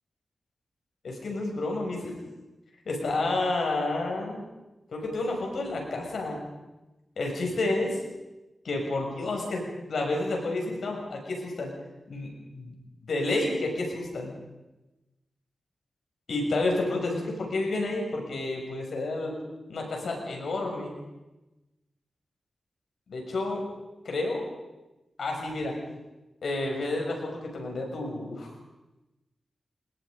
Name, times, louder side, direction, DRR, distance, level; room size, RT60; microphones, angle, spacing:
voice 1, 1.0-2.1 2.9-4.4 4.9-6.4 7.2-8.0 8.6-11.7 12.1-12.8 13.0-14.3 16.3-19.4 19.7-21.0 23.1-23.6 24.1-24.5 25.2-25.8 26.4-28.5, left 2 dB, 85° left, 1 dB, 6.8 m, -30 dB
29.0 x 21.0 x 5.3 m, 1.1 s
wide cardioid pair, 85°, 0 cm